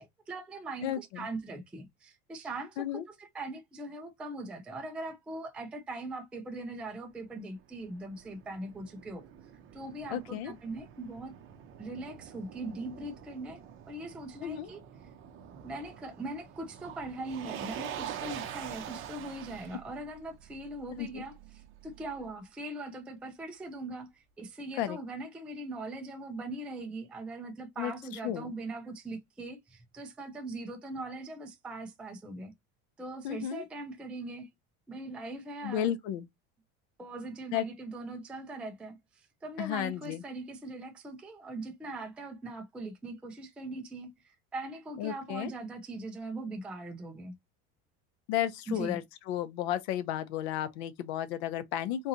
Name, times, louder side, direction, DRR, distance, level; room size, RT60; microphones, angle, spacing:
voice 1, 0.0-9.3 9.7-11.3 11.8-13.6 13.9-14.8 15.6-32.5 33.0-34.5 34.9-35.9 37.0-47.3 48.7-49.0, right 2 dB, 5° right, 0.3 m, -41 dB
voice 2, 0.8-1.3 2.8-3.0 10.1-10.5 14.4-14.7 21.0-21.2 24.8-25.0 27.8-27.9 28.2-28.5 33.2-33.6 35.6-36.3 37.5-37.7 39.6-40.2 45.0-45.5 48.3-52.1, left 11 dB, 85° left, 0.7 m, -33 dB
Motor vehicle (road), 7.2-22.3, right 9 dB, 40° right, 0.7 m, -46 dB
3.7 x 2.7 x 2.6 m
cardioid pair, 160°, 31 cm